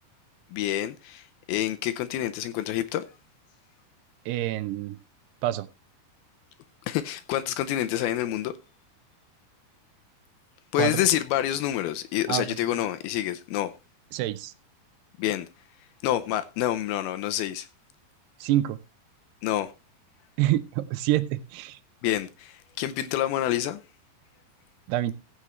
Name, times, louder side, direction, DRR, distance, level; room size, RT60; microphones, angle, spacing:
voice 1, 0.5-3.0 6.9-8.5 10.7-13.7 15.2-15.5 16.0-17.7 19.4-19.7 22.0-23.8, left 12 dB, 80° left, 2.4 m, -27 dB
voice 2, 4.3-5.0 5.4-5.7 10.8-11.0 12.3-12.5 14.1-14.5 18.4-18.8 20.4-21.8 24.9-25.1, right 14 dB, 80° right, 2.7 m, -26 dB
15.5 x 8.2 x 3.1 m
omnidirectional pair, 4.7 m